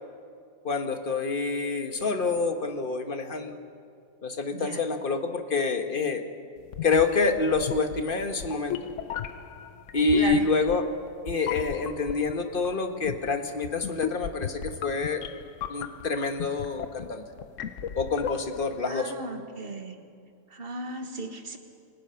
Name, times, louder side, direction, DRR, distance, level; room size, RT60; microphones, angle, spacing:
voice 1, 0.6-3.5 4.2-6.2 6.8-8.8 9.9-10.9 11.2-15.2 15.7-17.2 18.0-19.1, left 4 dB, 40° left, 6 dB, 1.5 m, -27 dB
sound 1, 6.7-18.8, left 9 dB, 65° left, 1.1 m, -37 dB
voice 2, 10.2-10.5 18.9-20.0 20.5-21.6, right 3 dB, 45° right, 5 dB, 1.7 m, -36 dB
27.5 x 19.0 x 5.8 m, 2.3 s
omnidirectional pair, 1.4 m